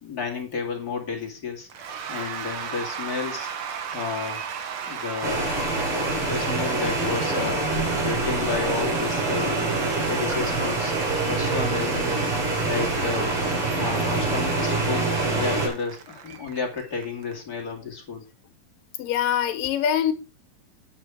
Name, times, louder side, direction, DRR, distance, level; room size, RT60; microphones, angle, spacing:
voice 1, 0.0-3.5 3.9-4.4 4.8-5.5 5.9-7.7 8.0-9.6 10.1-10.9 11.2-12.2 12.6-13.3 13.8-18.2, left 5 dB, 30° left, 2.1 m, -32 dB
Cheering / Applause / Crowd, 1.7-17.3, right 7 dB, 80° right, 1.2 m, -36 dB
sound 1, 5.2-15.7, right 3 dB, 40° right, 3.8 m, -25 dB
voice 2, 19.0-20.1, left 9 dB, 70° left, 2.8 m, -24 dB
9.5 x 6.8 x 4.8 m
omnidirectional pair, 4.2 m